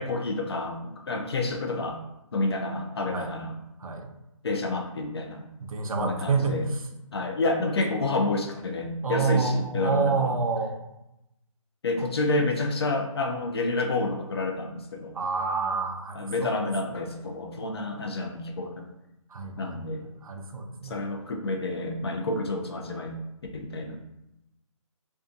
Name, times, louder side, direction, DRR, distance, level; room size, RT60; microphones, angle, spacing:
voice 1, 0.0-2.0 2.3-3.5 4.4-5.4 6.0-6.6 7.1-10.3 11.8-15.2 16.1-18.9 19.6-20.0 20.8-23.2 23.5-24.0, left 2 dB, 50° left, 3 dB, 0.4 m, -29 dB
voice 2, 3.8-4.1 5.7-6.6 9.0-10.8 12.0-12.1 15.1-16.6 19.3-19.8 20.2-21.0, right 4 dB, 90° right, 4 dB, 0.5 m, -28 dB
2.5 x 2.2 x 2.5 m, 0.90 s
hypercardioid pair, 170°, 17 cm